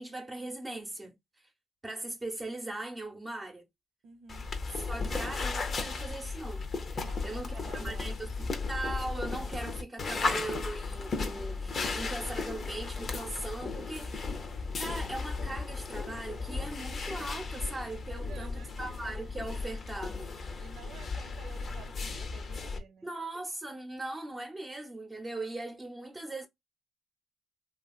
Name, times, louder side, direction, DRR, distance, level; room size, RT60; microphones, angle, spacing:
voice 1, 0.0-1.5 1.8-3.7 4.8-14.4 14.8-20.3 23.0-26.5, right 2 dB, 25° right, 0.7 m, -40 dB
voice 2, 4.0-4.5 6.9-8.3 18.1-19.0 20.6-23.1, right 6 dB, 75° right, 0.7 m, -52 dB
sound 1, 4.3-22.8, left 4 dB, 45° left, 0.6 m, -35 dB
2.8 x 2.7 x 2.3 m
cardioid pair, 90°, 0 cm